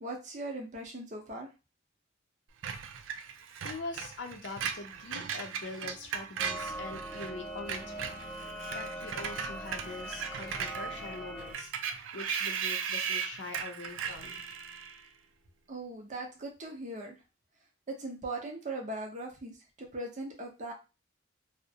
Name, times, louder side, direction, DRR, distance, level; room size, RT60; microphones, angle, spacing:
voice 1, 0.0-1.5 15.7-17.2 17.9-20.7, right 2 dB, 40° right, 1 dB, 0.6 m, -39 dB
Screech, 2.6-7.3 7.6-15.0, right 7 dB, 85° right, 0.3 m, -37 dB
voice 2, 3.6-14.4, left 3 dB, 65° left, 4 dB, 0.5 m, -43 dB
sound 1, 6.4-11.5, right 1 dB, 10° left, 0.4 m, -41 dB
2.4 x 2.1 x 2.7 m, 0.28 s
head